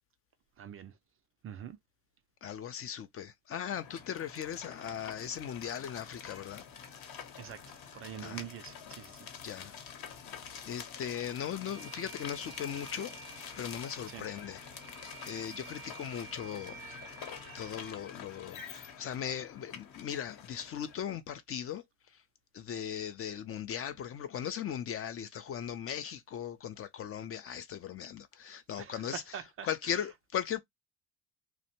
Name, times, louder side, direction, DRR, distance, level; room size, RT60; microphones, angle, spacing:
voice 1, 0.6-1.0 1.4-1.8 7.4-9.3 14.1-14.3 15.4-15.5 28.8-30.1, right 9 dB, 35° right, 0.4 m, -45 dB
voice 2, 2.4-6.6 8.2-8.4 9.4-9.8 10.6-13.1 13.6-14.6 15.3-16.8 17.5-21.8 22.5-29.2 29.7-30.6, left 9 dB, 35° left, 0.4 m, -38 dB
sound 1, 3.7-21.0, left 7 dB, 55° left, 0.9 m, -47 dB
Bowed string instrument, 11.6-17.9, right 6 dB, 85° right, 0.6 m, -51 dB
2.6 x 2.1 x 2.8 m
hypercardioid pair, 60°, 44 cm